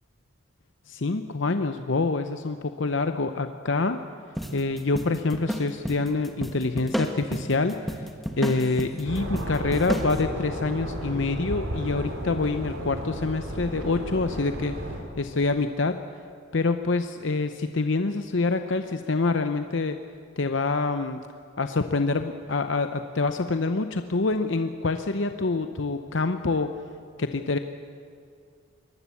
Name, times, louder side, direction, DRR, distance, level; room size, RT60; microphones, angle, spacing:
voice 1, 0.9-4.0 4.5-8.1 8.4-14.8 15.2-16.0 16.5-20.0 20.4-21.2 21.6-26.8 27.2-27.6, left 3 dB, 65° left, 8 dB, 0.8 m, -26 dB
sound 1, 4.4-10.2, equal, ahead, 1.5 m, -32 dB
sound 2, 9.0-15.0, right 1 dB, 70° right, 4.6 m, -33 dB
23.5 x 19.5 x 8.4 m, 2.3 s
head